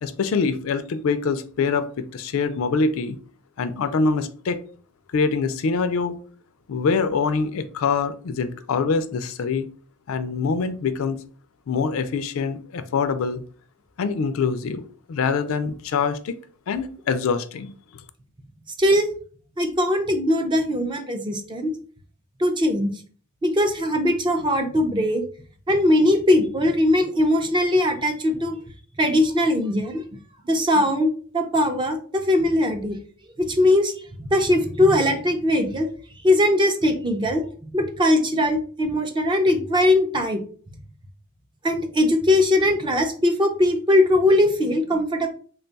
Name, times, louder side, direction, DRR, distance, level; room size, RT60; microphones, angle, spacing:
voice 1, 0.0-3.2 3.6-4.6 5.1-6.2 6.7-9.7 10.1-11.2 11.7-13.4 14.0-14.8 15.1-16.3 16.7-17.7, left 5 dB, 70° left, 11 dB, 0.4 m, -24 dB
voice 2, 19.6-21.7 22.4-23.0 23.4-25.2 25.7-28.6 29.0-30.0 30.5-33.0 33.4-33.9 34.2-35.9 36.2-37.4 37.7-40.4 41.6-45.3, left 1 dB, 20° right, 5 dB, 0.4 m, -20 dB
3.5 x 2.3 x 3.9 m, 0.43 s
head